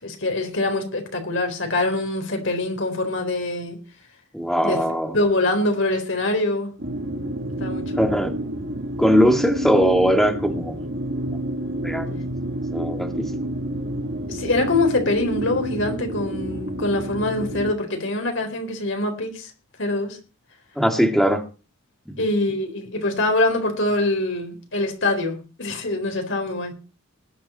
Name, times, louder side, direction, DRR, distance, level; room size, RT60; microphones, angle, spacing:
voice 1, 0.0-3.8 4.6-4.8 5.1-6.7 7.6-8.1 14.3-19.5 19.8-20.2 22.2-26.7, left 2 dB, 60° left, 4.0 m, -24 dB
voice 2, 4.3-5.2 8.0-8.3 9.0-10.8 11.8-12.2 12.7-13.3 20.8-21.4 22.1-22.2, equal, ahead, 2.1 m, -20 dB
sound 1, 6.8-17.7, right 1 dB, 55° right, 1.9 m, -29 dB
20.0 x 8.6 x 4.3 m
head